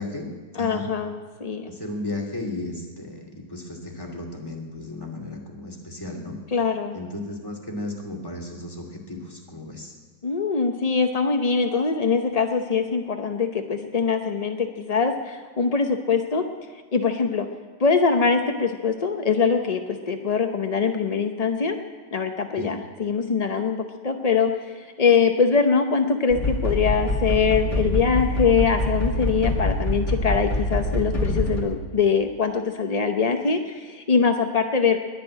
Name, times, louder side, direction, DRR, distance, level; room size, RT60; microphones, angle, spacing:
voice 1, 0.0-0.9 1.7-6.3 6.9-9.9 22.6-22.7, left 2 dB, 10° left, 1 dB, 2.5 m, -34 dB
voice 2, 0.6-1.7 6.5-7.0 10.2-16.4 16.9-17.5 17.8-21.8 22.1-24.5 25.0-35.0, left 5 dB, 55° left, 5 dB, 0.4 m, -23 dB
sound 1, 26.3-31.6, left 1 dB, 40° left, 2.3 m, -25 dB
20.5 x 6.8 x 9.8 m, 1.5 s
omnidirectional pair, 2.0 m